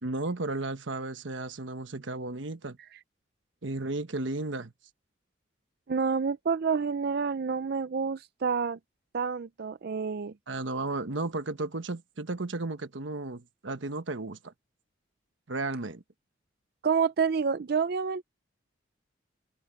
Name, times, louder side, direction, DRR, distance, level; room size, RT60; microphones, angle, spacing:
voice 1, 0.0-2.8 3.6-4.7 10.5-14.5 15.5-16.0, right 2 dB, 75° right, 1.2 m, -34 dB
voice 2, 5.9-8.8 9.1-10.3 16.8-18.2, right 5 dB, 55° right, 0.4 m, -28 dB
head